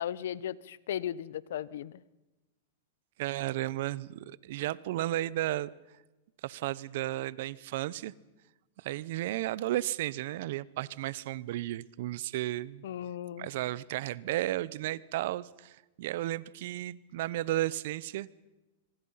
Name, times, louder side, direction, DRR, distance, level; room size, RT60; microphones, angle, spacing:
voice 1, 0.0-2.0 12.8-13.5, left 10 dB, 75° left, 20 dB, 1.0 m, -36 dB
voice 2, 3.2-5.7 6.4-8.1 8.8-12.8 13.4-18.3, right 15 dB, 65° right, 21 dB, 0.9 m, -33 dB
25.5 x 24.5 x 5.8 m, 1.1 s
hypercardioid pair, 130°, 0 cm